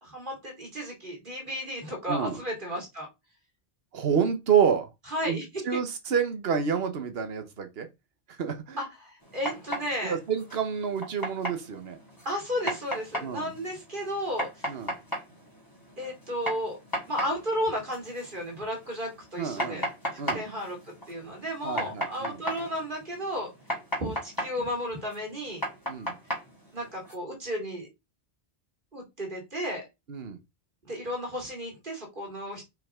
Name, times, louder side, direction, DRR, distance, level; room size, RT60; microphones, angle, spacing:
voice 1, 0.0-3.1 5.1-5.8 8.8-10.2 12.2-14.7 16.0-16.8 17.1-19.9 20.1-23.5 24.0-25.6 26.0-26.1 26.7-27.9 28.9-29.9 30.8-32.6, equal, 55° right, 2.8 m, -33 dB
voice 2, 2.1-2.4 3.9-4.9 5.2-5.4 5.6-7.9 8.4-8.8 10.0-12.0 13.2-13.5 14.7-14.9 19.4-19.9 20.2-20.4 21.6-22.4 25.9-26.1 30.1-30.4, right 7 dB, 75° right, 1.3 m, -28 dB
sound 1, 9.2-27.1, equal, 20° left, 2.7 m, -37 dB
5.7 x 5.3 x 3.6 m
omnidirectional pair, 1.0 m